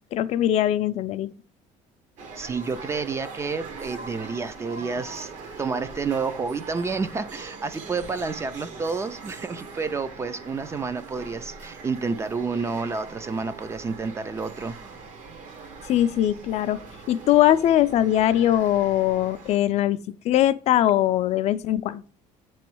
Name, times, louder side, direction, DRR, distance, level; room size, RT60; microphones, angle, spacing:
voice 1, 0.1-1.3 15.9-16.8 17.1-22.0, left 12 dB, 50° left, 0.4 m, -21 dB
sound 1, 2.2-19.6, right 4 dB, 60° right, 1.1 m, -41 dB
voice 2, 2.4-5.3 5.6-14.8, right 4 dB, 20° right, 0.3 m, -30 dB
7.7 x 3.1 x 4.6 m
cardioid pair, 125°, 14 cm